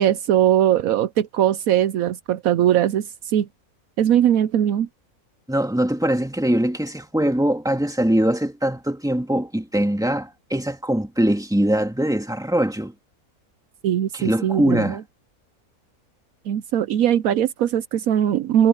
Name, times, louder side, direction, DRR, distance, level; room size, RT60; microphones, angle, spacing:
voice 1, 0.0-3.5 4.0-4.9 13.8-15.0 16.5-18.7, right 10 dB, 75° right, 1.1 m, -20 dB
voice 2, 5.5-12.9 14.1-15.0, right 1 dB, ahead, 2.1 m, -22 dB
omnidirectional pair, 1.5 m